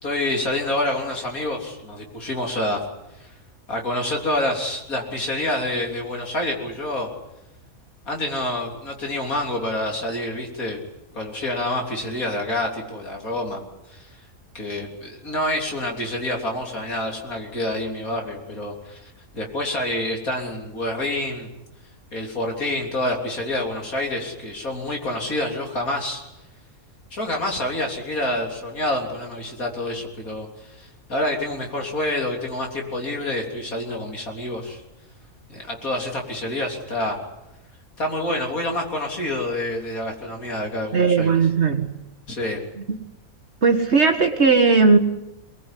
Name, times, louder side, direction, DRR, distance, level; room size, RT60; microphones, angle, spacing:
voice 1, 0.0-2.8 3.2-3.3 3.7-7.1 8.1-10.8 11.1-13.6 13.9-14.1 14.5-21.5 22.1-26.2 27.1-34.8 35.5-37.2 38.0-41.4 42.3-42.6, left 1 dB, 75° left, 1 dB, 4.0 m, -27 dB
voice 2, 40.9-41.9 42.9-43.0 43.6-45.0, right 4 dB, 50° right, 5 dB, 1.8 m, -17 dB
24.0 x 20.0 x 10.0 m, 0.93 s
omnidirectional pair, 1.5 m